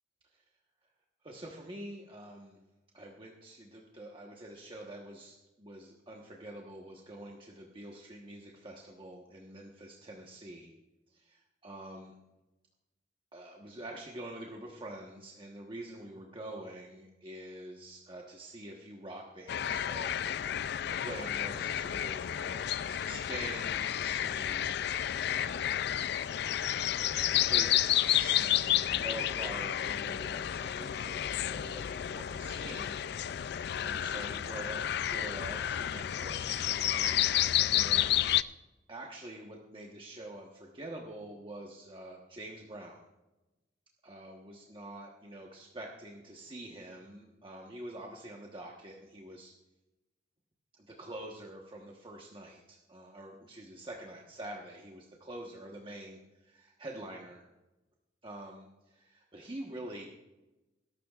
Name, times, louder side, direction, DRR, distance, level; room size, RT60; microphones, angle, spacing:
voice 1, 1.2-2.6 2.9-10.7 11.1-12.1 13.3-20.2 21.0-24.6 25.3-25.8 27.4-37.4 37.7-38.2 38.9-43.0 44.0-49.5 50.7-57.4 58.2-60.1, right 1 dB, 30° right, -1 dB, 1.2 m, -46 dB
sound 1, 19.5-38.4, left 11 dB, 65° left, 0.4 m, -31 dB
20.5 x 12.0 x 2.4 m, 1.0 s
head